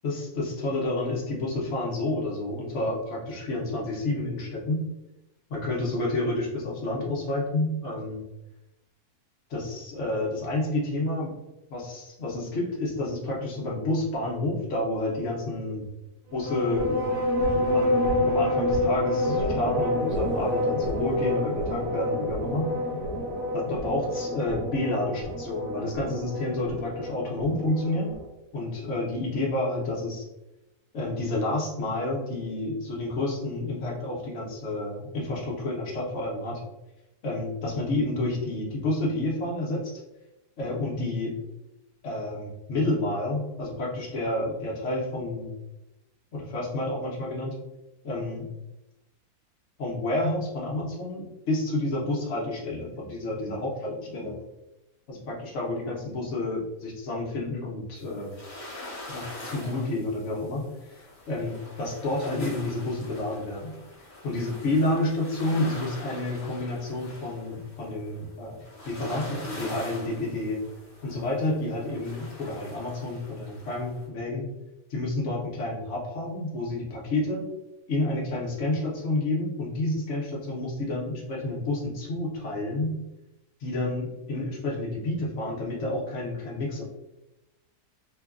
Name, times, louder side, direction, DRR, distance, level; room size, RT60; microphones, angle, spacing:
voice 1, 0.0-4.8 5.5-8.2 9.5-11.3 11.7-15.9 16.3-17.0 17.7-22.7 23.5-28.1 28.5-30.2 30.9-36.6 37.2-39.9 40.6-41.3 42.0-45.5 46.3-47.5 48.0-48.5 49.8-54.4 55.1-58.3 59.1-61.0 61.3-63.7 64.2-70.6 71.0-74.5 74.9-77.5 77.9-83.0 83.6-86.8, left 2 dB, 55° left, -3 dB, 1.0 m, -30 dB
sound 1, 16.3-28.2, left 1 dB, 70° right, 1.2 m, -28 dB
sound 2, 58.0-74.0, left 2 dB, 30° left, 0.7 m, -43 dB
3.0 x 2.2 x 2.3 m, 0.96 s
omnidirectional pair, 1.7 m